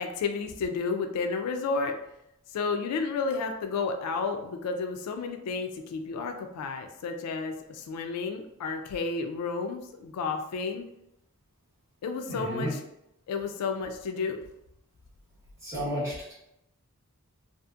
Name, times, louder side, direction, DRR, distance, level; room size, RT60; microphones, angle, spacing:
voice 1, 0.0-2.0 2.5-10.9 12.0-12.8 13.3-14.4, left 4 dB, 90° left, 6 dB, 0.3 m, -31 dB
voice 2, 12.3-12.7 15.6-16.3, equal, 15° right, -10 dB, 1.5 m, -32 dB
2.7 x 2.4 x 2.3 m, 0.83 s
head